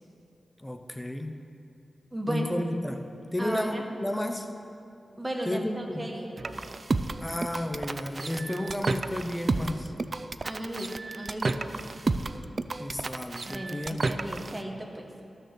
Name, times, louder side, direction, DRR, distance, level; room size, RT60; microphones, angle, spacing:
voice 1, 0.6-1.4 2.3-3.0 3.3-4.5 5.5-6.1 7.2-9.9 12.8-14.0, left 1 dB, 10° left, 6 dB, 0.7 m, -32 dB
voice 2, 2.1-2.5 3.4-3.8 5.2-6.3 10.4-11.7 13.5-15.0, right 1 dB, 15° right, 1 dB, 1.1 m, -35 dB
sound 1, 6.4-14.6, right 3 dB, 40° right, 0.3 m, -31 dB
12.5 x 6.6 x 6.5 m, 2.7 s
wide cardioid pair, 135°, 0 cm